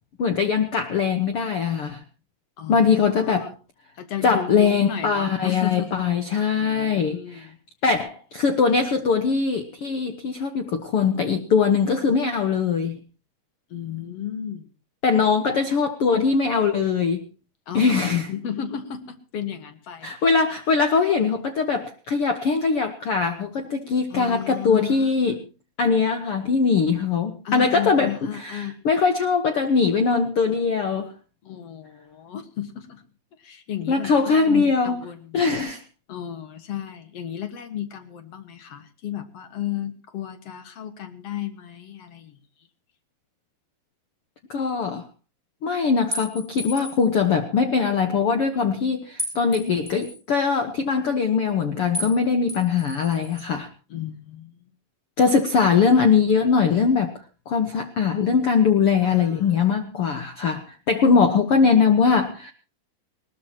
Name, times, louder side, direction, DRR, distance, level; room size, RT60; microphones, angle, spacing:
voice 1, 0.2-2.0 2.7-3.5 4.2-7.5 7.8-13.0 15.0-17.2 17.7-18.3 20.0-25.4 25.8-28.1 28.4-31.1 33.9-35.0 35.3-35.8 44.5-45.0 45.6-53.7 55.2-62.5, left 5 dB, 75° left, 7 dB, 1.3 m, -21 dB
voice 2, 2.6-3.5 3.9-6.0 6.6-7.6 13.7-14.7 17.7-20.1 24.1-25.4 27.4-28.8 31.4-33.0 33.4-35.4 36.1-42.4 53.9-54.7 59.0-59.7, left 10 dB, 50° left, 9 dB, 2.2 m, -33 dB
sound 1, 46.1-47.1 49.2-50.2 51.9-52.2 52.5-53.4, left 1 dB, 15° right, 6.6 m, -33 dB
20.0 x 19.5 x 2.9 m, 0.34 s
omnidirectional pair, 4.3 m